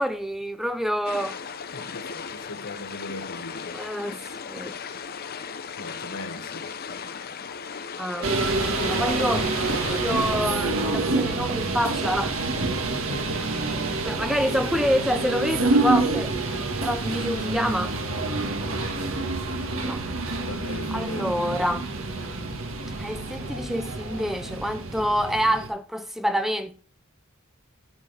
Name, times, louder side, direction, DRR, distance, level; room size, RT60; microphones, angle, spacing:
voice 1, 0.0-1.4 3.7-4.2 4.5-4.7 8.0-8.3 8.9-9.5 9.9-12.4 14.1-16.3 16.8-18.0 19.8-20.0 20.9-21.9 23.0-26.8, equal, ahead, 0.5 m, -27 dB
sound 1, 1.0-10.3, left 6 dB, 45° left, 0.7 m, -37 dB
voice 2, 1.7-3.8 5.8-6.7 13.7-14.3 20.4-21.4, left 2 dB, 75° left, 1.6 m, -39 dB
sound 2, 8.2-25.7, right 2 dB, 75° right, 1.7 m, -27 dB
11.0 x 7.3 x 3.4 m
head